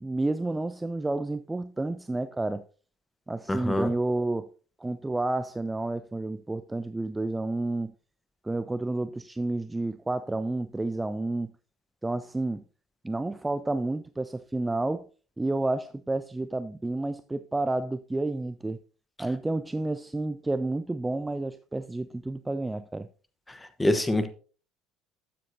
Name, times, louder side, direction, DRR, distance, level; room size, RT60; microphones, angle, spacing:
voice 1, 0.0-2.6 3.3-4.5 4.8-7.9 8.4-11.5 12.0-12.6 13.0-15.1 15.4-18.8 19.2-23.1, right 2 dB, 10° right, 0.4 m, -30 dB
voice 2, 3.5-3.9 23.5-24.3, left 1 dB, 10° left, 1.1 m, -26 dB
12.0 x 7.6 x 2.7 m
figure-of-eight pair, 60°, 0 cm